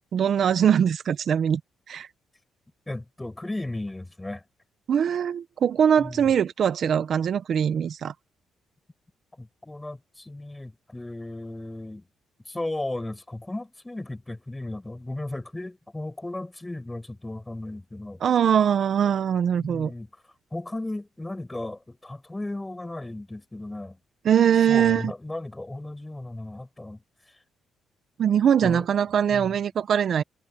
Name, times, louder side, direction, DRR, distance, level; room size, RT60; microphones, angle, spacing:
voice 1, 0.1-1.6 1.9-2.1 4.9-8.1 18.2-19.9 24.2-25.1 28.2-30.2, right 8 dB, 60° right, 1.2 m, -22 dB
voice 2, 2.9-4.4 6.0-6.3 9.4-12.1 12.5-18.2 19.6-20.1 20.5-24.0 24.7-27.0 28.6-28.9 29.3-29.6, left 2 dB, 15° left, 6.1 m, -35 dB
cardioid pair, 90°, 0 cm